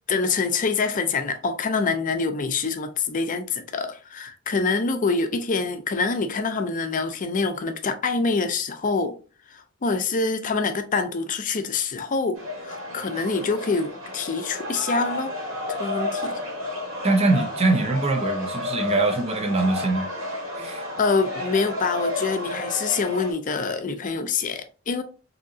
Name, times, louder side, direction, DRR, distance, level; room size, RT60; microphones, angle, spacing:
voice 1, 0.1-9.2 9.5-15.3 15.8-16.4 21.0-25.0, left 4 dB, 40° left, 0.5 m, -25 dB
sound 1, 12.3-23.3, left 2 dB, 90° right, 1.5 m, -31 dB
voice 2, 17.0-20.1 20.6-20.8, right 3 dB, 30° right, 0.6 m, -23 dB
3.5 x 2.8 x 2.6 m
head